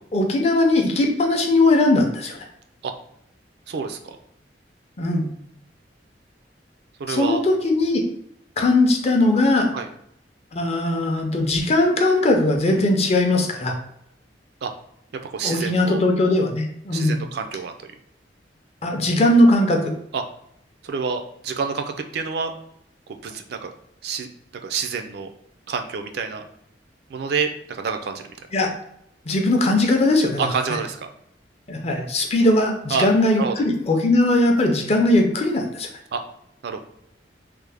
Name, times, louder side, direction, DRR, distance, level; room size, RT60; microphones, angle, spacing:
voice 1, 0.1-2.5 5.0-5.3 7.1-8.0 8.6-9.7 10.5-13.8 15.4-17.2 18.8-19.8 28.5-28.7 29.3-30.5 31.7-35.9, left 2 dB, 35° left, 3 dB, 0.5 m, -19 dB
voice 2, 3.7-4.2 7.0-7.4 9.7-9.9 14.6-14.7 15.3-16.0 16.9-17.9 20.1-20.2 20.8-22.5 23.2-23.7 24.0-24.3 24.6-25.3 25.7-26.4 27.1-28.3 30.4-31.1 32.9-33.1 33.4-33.5 36.1-36.2 36.6-36.8, right 5 dB, 60° right, 7 dB, 0.3 m, -28 dB
3.2 x 2.0 x 3.3 m, 0.75 s
head